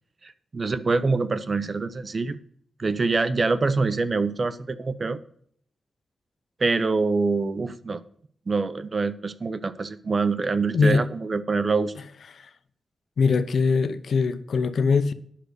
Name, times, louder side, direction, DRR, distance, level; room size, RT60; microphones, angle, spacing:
voice 1, 0.2-2.4 2.8-5.2 6.6-8.0 8.5-11.9, right 4 dB, 40° right, 0.7 m, -25 dB
voice 2, 13.2-15.1, left 4 dB, 70° left, 0.7 m, -22 dB
10.0 x 6.3 x 6.6 m
wide cardioid pair, 100°, 0 cm